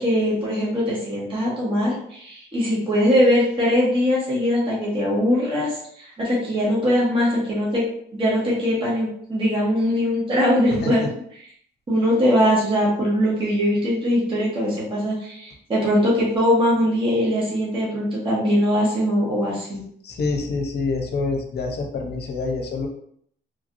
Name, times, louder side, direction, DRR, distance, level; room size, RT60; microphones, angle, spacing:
voice 1, 0.0-7.8 8.1-11.0 11.9-19.8, equal, 25° right, -7 dB, 1.4 m, -21 dB
voice 2, 20.0-22.9, left 3 dB, 55° left, 2 dB, 0.7 m, -26 dB
3.2 x 2.6 x 2.5 m, 0.66 s
cardioid pair, 90°, 20 cm